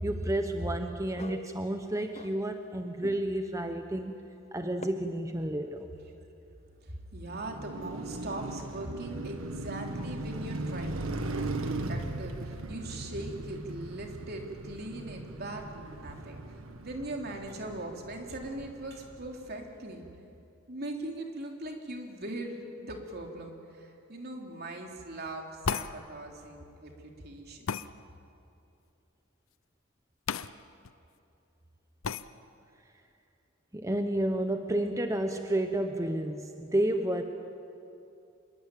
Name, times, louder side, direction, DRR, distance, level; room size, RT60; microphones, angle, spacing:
voice 1, 0.0-4.2 4.5-5.9 33.7-37.2, right 1 dB, 15° right, 6 dB, 1.0 m, -31 dB
sound 1, 1.2-2.8 3.0-3.5 4.8-4.9, left 2 dB, 30° left, 0.9 m, -45 dB
voice 2, 6.8-16.5 16.8-20.0 20.7-27.8, right 1 dB, 50° right, 2 dB, 3.4 m, -40 dB
Car passing by, 7.3-19.5, right 2 dB, 85° right, 1.5 m, -38 dB
sound 2, 25.6-25.9 27.7-27.9 30.3-30.5 30.8-30.9 32.0-32.2, left 6 dB, 75° left, 0.7 m, -32 dB
26.0 x 22.5 x 9.1 m, 2.7 s
head